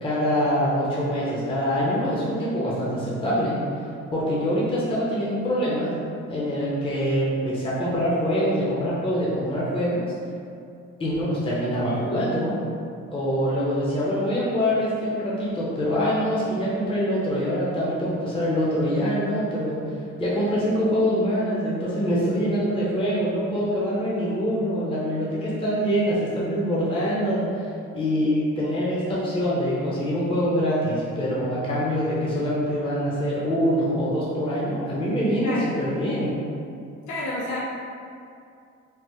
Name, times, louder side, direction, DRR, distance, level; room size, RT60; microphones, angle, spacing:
voice 1, 0.0-3.6 4.1-5.9 6.3-10.0 11.0-12.6 13.1-19.8 20.2-27.6 27.9-36.4, equal, 20° left, -7 dB, 0.6 m, -24 dB
voice 2, 35.4-35.7 37.1-37.6, left 1 dB, 75° left, -7 dB, 0.7 m, -29 dB
3.3 x 2.0 x 3.0 m, 2.5 s
cardioid pair, 90°, 30 cm